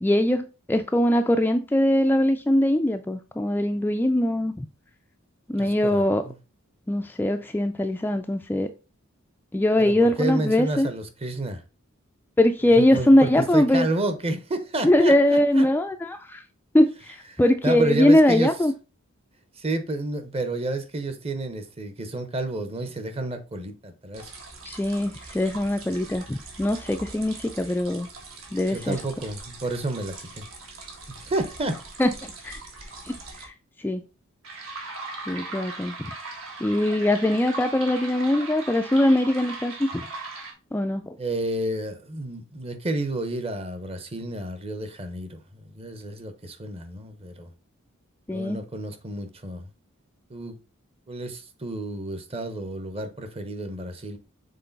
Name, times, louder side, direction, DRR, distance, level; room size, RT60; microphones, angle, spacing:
voice 1, 0.0-4.7 5.5-6.2 6.9-8.7 9.5-10.9 12.4-13.9 14.8-16.4 16.7-18.7 24.6-28.1 28.5-29.0 32.0-32.6 33.0-33.5 33.8-34.0 35.3-36.0 36.6-40.0 40.7-41.2 48.3-48.6, left 1 dB, 10° left, 0.3 m, -22 dB
voice 2, 5.6-6.3 9.8-11.6 12.6-15.7 17.3-18.5 19.5-24.3 28.7-30.4 31.1-31.8 41.2-47.5 48.3-49.7 50.3-50.6 51.1-54.2, right 2 dB, 30° right, 0.9 m, -30 dB
sound 1, 24.1-33.4 34.4-40.5, right 3 dB, 70° right, 1.8 m, -40 dB
6.6 x 3.8 x 3.9 m
head